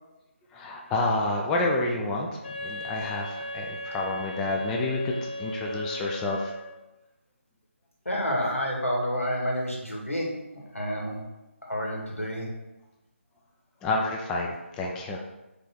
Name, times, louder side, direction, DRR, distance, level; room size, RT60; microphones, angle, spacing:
voice 1, 0.5-6.5 13.8-15.2, left 2 dB, 5° left, -1 dB, 0.4 m, -29 dB
Wind instrument woodwind instrument, 2.4-6.9, left 1 dB, 40° left, 1.2 m, -37 dB
voice 2, 8.1-11.2 11.6-12.5, equal, 90° left, -1 dB, 2.2 m, -29 dB
4.9 x 4.4 x 6.0 m, 1.0 s
figure-of-eight pair, 155°, 7 cm